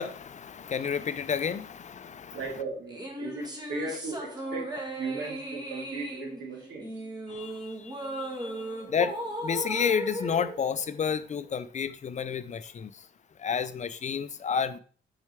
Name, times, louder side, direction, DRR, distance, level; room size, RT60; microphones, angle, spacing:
voice 1, 0.0-2.4 7.3-9.2 9.4-13.1 13.4-14.8, left 7 dB, 35° left, 0.5 m, -31 dB
voice 2, 2.3-6.9, right 3 dB, 85° right, 2.3 m, -37 dB
sound 1, 2.9-11.5, right 1 dB, 20° right, 1.4 m, -37 dB
6.3 x 4.6 x 3.3 m
cardioid pair, 90°, 20 cm